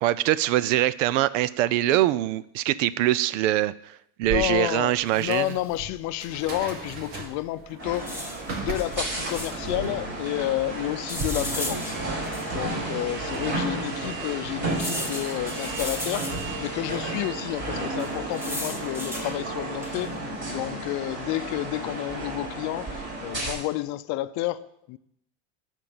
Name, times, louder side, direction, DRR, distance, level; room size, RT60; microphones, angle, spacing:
voice 1, 0.0-5.5, right 14 dB, 80° right, 0.6 m, -23 dB
sound 1, 4.2-11.3, right 3 dB, 65° right, 2.6 m, -38 dB
voice 2, 4.3-12.0 12.5-16.3 16.6-20.1 20.5-25.0, left 16 dB, 50° left, 0.6 m, -30 dB
sound 2, 5.1-5.7 6.7-6.8 7.0-7.1 7.9-9.8 11.1-12.7 13.3-13.4 14.7-16.7 18.0-19.3 19.8-20.1, left 1 dB, 5° right, 1.5 m, -36 dB
sound 3, 7.8-23.5, right 2 dB, 30° right, 5.0 m, -32 dB
12.0 x 4.5 x 7.8 m
supercardioid pair, 125°, 37 cm